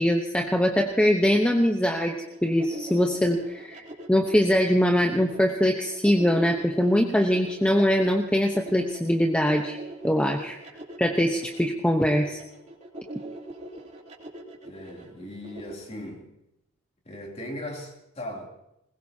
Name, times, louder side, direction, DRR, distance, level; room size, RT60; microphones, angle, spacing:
voice 1, 0.0-2.2 2.4-3.8 4.1-9.8 10.0-10.6 11.0-12.4, equal, 5° left, 2 dB, 0.9 m, -22 dB
sound 1, 2.0-15.7, right 1 dB, 30° right, 3.1 m, -42 dB
voice 2, 14.6-16.3 17.0-18.5, left 1 dB, 30° left, 0 dB, 3.0 m, -38 dB
21.0 x 20.5 x 2.8 m, 0.84 s
head